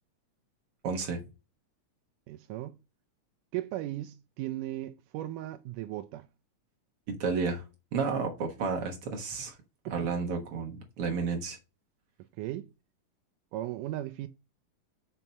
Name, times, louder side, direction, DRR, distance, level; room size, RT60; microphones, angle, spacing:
voice 1, 0.8-1.2 7.2-7.6 7.9-9.6 9.9-11.6, right 5 dB, 55° right, 1.8 m, -31 dB
voice 2, 2.3-2.8 3.5-6.3 9.9-10.1 12.4-12.7 13.5-14.3, right 14 dB, 80° right, 1.9 m, -37 dB
6.0 x 5.5 x 5.6 m
omnidirectional pair, 4.0 m